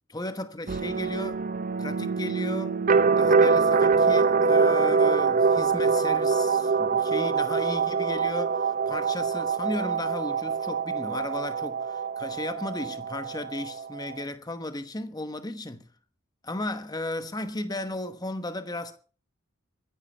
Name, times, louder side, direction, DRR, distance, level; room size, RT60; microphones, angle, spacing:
voice 1, 0.1-1.5 1.8-2.8 3.2-15.9 16.4-19.0, left 1 dB, 15° left, 1.0 m, -35 dB
sound 1, 0.7-14.2, right 5 dB, 40° right, 0.7 m, -24 dB
22.0 x 10.5 x 4.4 m
head